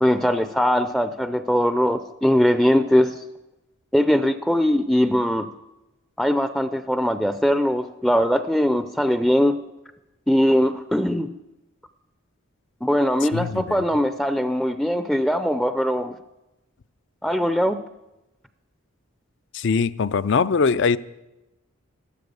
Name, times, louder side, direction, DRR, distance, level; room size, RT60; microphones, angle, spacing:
voice 1, 0.0-3.2 3.9-5.5 6.2-9.5 10.3-11.3 12.8-16.2 17.2-17.8, equal, ahead, 10 dB, 0.5 m, -21 dB
voice 2, 13.3-13.8 19.5-21.0, left 5 dB, 60° left, 16 dB, 0.5 m, -22 dB
14.0 x 13.0 x 6.9 m, 0.99 s
head